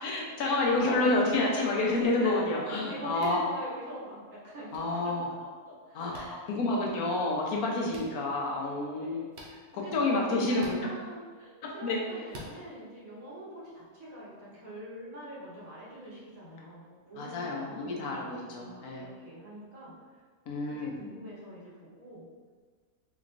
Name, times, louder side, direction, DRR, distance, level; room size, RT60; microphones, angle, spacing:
voice 1, 0.0-3.5 4.7-5.3 5.9-9.3 9.7-10.8 11.6-12.0 17.2-19.0 20.5-21.0, left 2 dB, 85° left, -2 dB, 1.2 m, -29 dB
voice 2, 2.2-4.7 5.4-6.4 7.9-8.3 9.0-9.9 10.4-19.9 20.7-22.3, right 1 dB, 75° right, -8 dB, 1.8 m, -45 dB
sound 1, 3.2-3.4 4.7-4.8 6.1-6.3 7.9-8.1 9.3-9.5 10.6-10.8 12.3-12.5, right 1 dB, 55° right, 0.7 m, -46 dB
4.2 x 3.0 x 2.5 m, 1.6 s
omnidirectional pair, 1.5 m